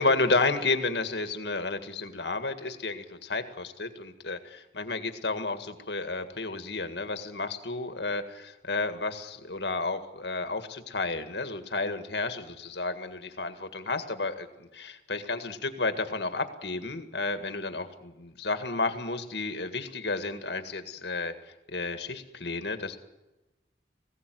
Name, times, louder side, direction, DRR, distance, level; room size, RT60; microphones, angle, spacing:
voice 1, 0.0-21.3 21.7-23.0, left 3 dB, 70° left, 8 dB, 2.0 m, -31 dB
20.5 x 16.5 x 9.4 m, 1.0 s
head